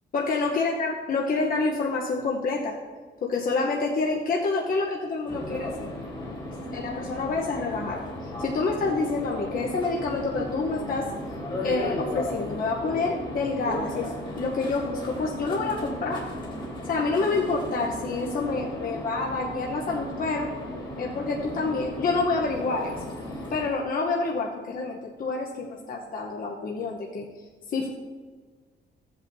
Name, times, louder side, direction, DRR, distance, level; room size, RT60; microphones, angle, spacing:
voice 1, 0.1-2.8 3.2-5.9 6.7-8.0 8.4-11.1 11.6-16.3 16.9-20.5 21.0-23.1 23.5-27.3 27.7-27.9, left 3 dB, 50° left, -2 dB, 0.9 m, -28 dB
sound 1, 5.3-23.7, left 1 dB, 25° left, 1.6 m, -35 dB
14.5 x 7.9 x 2.7 m, 1.5 s
wide cardioid pair, 155°, 19 cm